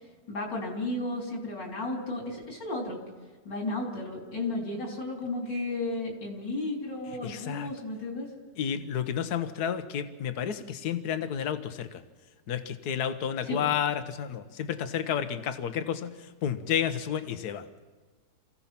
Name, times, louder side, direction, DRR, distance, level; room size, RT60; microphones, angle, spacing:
voice 1, 0.3-3.0 3.4-8.3 13.4-13.7, left 2 dB, 90° left, 0 dB, 4.3 m, -33 dB
voice 2, 7.2-7.7 8.6-12.0 12.5-16.1 16.4-17.7, left 8 dB, 65° left, 10 dB, 1.5 m, -31 dB
28.0 x 16.0 x 5.9 m, 1.4 s
omnidirectional pair, 1.9 m